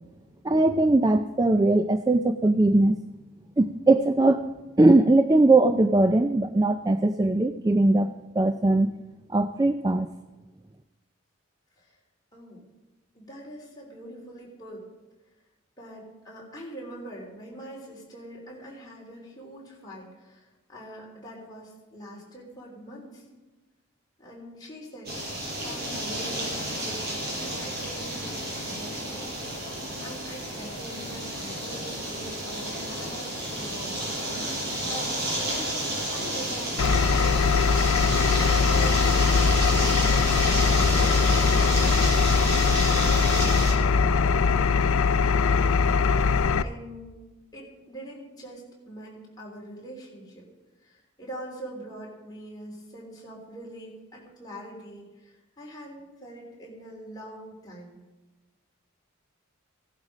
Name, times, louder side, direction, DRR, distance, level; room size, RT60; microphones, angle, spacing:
voice 1, 0.4-3.0 3.6-4.5 4.8-8.9 9.3-10.1, right 2 dB, 20° right, 8 dB, 0.4 m, -20 dB
voice 2, 12.3-12.6 13.1-14.9 15.8-23.2 24.2-25.1 25.6-29.2 30.0-34.0 34.8-41.9 42.9-44.7 45.3-47.3 47.5-50.5 50.8-58.0, equal, 20° left, -3 dB, 3.7 m, -43 dB
sound 1, 25.0-43.7, right 1 dB, 50° right, 5.6 m, -31 dB
Engine, 36.8-46.6, left 5 dB, 80° left, 0.5 m, -21 dB
17.0 x 11.5 x 5.0 m, 1.1 s
head